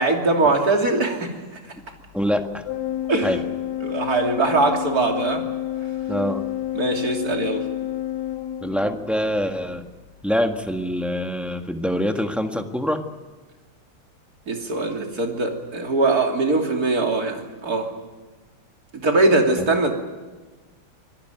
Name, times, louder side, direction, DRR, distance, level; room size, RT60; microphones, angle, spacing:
voice 1, 0.0-1.3 3.1-3.3 3.8-5.4 6.8-7.7 14.5-17.9 19.0-19.9, right 3 dB, 50° right, 2 dB, 3.5 m, -21 dB
voice 2, 2.1-2.6 3.2-3.4 6.1-6.4 8.6-9.8 10.2-13.0 19.6-19.8, equal, ahead, 5 dB, 1.3 m, -25 dB
Organ, 2.7-9.2, left 12 dB, 65° left, 1.4 m, -29 dB
25.0 x 18.5 x 9.2 m, 1.3 s
omnidirectional pair, 2.1 m